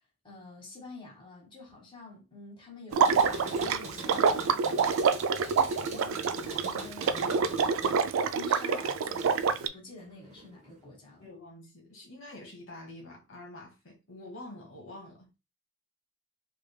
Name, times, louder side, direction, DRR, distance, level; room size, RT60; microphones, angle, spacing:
voice 1, 0.2-5.1 5.4-7.5 7.8-8.0 8.3-11.3, left 3 dB, 25° left, 1.3 m, -48 dB
sound 1, 2.9-9.6 10.0-10.8, right 2 dB, 35° right, 0.8 m, -43 dB
Water / Liquid, 2.9-9.7, right 6 dB, 70° right, 0.3 m, -27 dB
voice 2, 11.2-15.3, left 1 dB, 65° left, 1.2 m, -47 dB
3.4 x 3.3 x 2.2 m
head